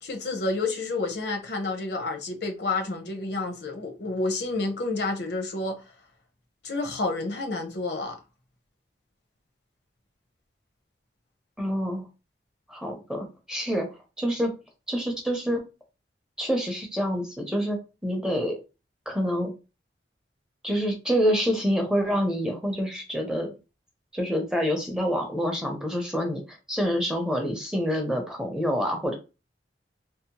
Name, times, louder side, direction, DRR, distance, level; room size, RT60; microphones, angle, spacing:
voice 1, 0.0-5.8 6.6-8.2, left 3 dB, 65° left, 0.7 m, -29 dB
voice 2, 11.6-12.0 12.7-13.9 14.2-14.5 14.9-15.6 16.4-18.6 19.1-19.5 20.6-23.6 24.1-29.2, equal, 5° right, 0.5 m, -27 dB
2.7 x 2.0 x 2.8 m
head